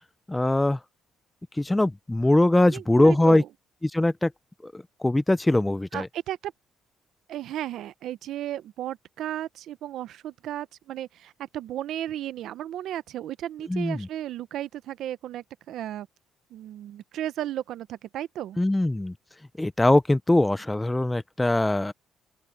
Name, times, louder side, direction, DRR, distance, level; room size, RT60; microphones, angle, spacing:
voice 1, 0.3-0.8 1.6-3.4 3.8-4.3 4.6-6.1 13.7-14.1 18.6-19.1 19.6-21.9, left 1 dB, 10° left, 0.6 m, -22 dB
voice 2, 2.6-3.5 5.9-6.5 7.3-16.1 16.5-18.6, right 12 dB, 70° right, 0.7 m, -34 dB
open air
cardioid pair, 135°, 0 cm